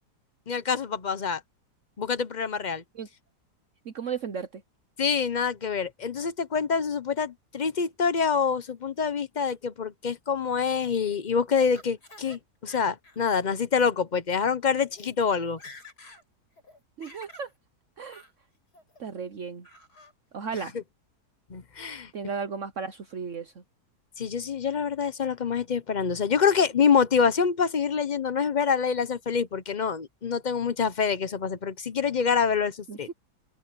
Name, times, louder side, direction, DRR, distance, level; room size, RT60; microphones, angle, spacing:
voice 1, 0.5-1.4 2.0-2.8 5.0-15.6 21.5-22.1 24.2-33.1, left 6 dB, 40° left, 0.6 m, -26 dB
voice 2, 3.8-4.6 17.0-17.5 18.0-18.2 19.0-19.7 20.3-20.7 22.1-23.6 32.9-33.1, right 6 dB, 55° right, 1.2 m, -35 dB
Laughter, 10.8-12.4 12.7-13.3 13.7-13.9 14.6-14.7 14.9-15.1 15.4-16.2 16.6-17.5 18.1-18.3 18.7-19.2 19.6-20.1, left 2 dB, 75° left, 7.4 m, -50 dB
open air
omnidirectional pair, 1.7 m